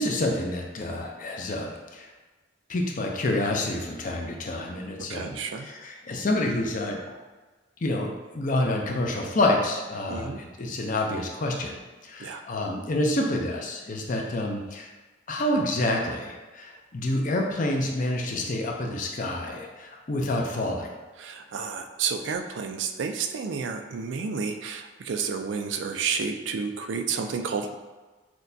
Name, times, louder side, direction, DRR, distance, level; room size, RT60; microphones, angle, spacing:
voice 1, 0.0-2.1 2.7-7.0 7.8-11.8 12.0-14.9 15.3-20.9, left 1 dB, 45° left, 1 dB, 0.5 m, -28 dB
voice 2, 5.1-5.7 10.1-10.4 12.2-12.4 21.2-27.7, right 5 dB, 75° right, 6 dB, 0.4 m, -31 dB
6.0 x 2.2 x 2.7 m, 1.3 s
head